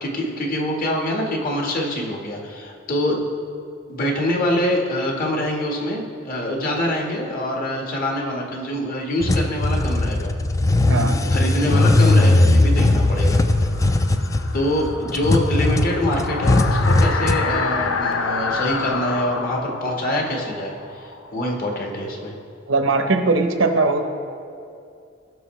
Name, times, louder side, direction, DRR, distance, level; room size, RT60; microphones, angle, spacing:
voice 1, 0.0-3.2 3.9-10.4 11.3-13.4 14.5-22.3, left 1 dB, 50° left, 0 dB, 1.4 m, -25 dB
sound 1, 9.2-17.5, left 2 dB, 15° left, 0.3 m, -18 dB
voice 2, 10.9-11.2 22.7-24.0, right 3 dB, 80° right, 6 dB, 0.8 m, -19 dB
sound 2, 13.2-21.9, left 4 dB, 80° left, 0.6 m, -28 dB
17.5 x 6.1 x 3.1 m, 2.4 s
head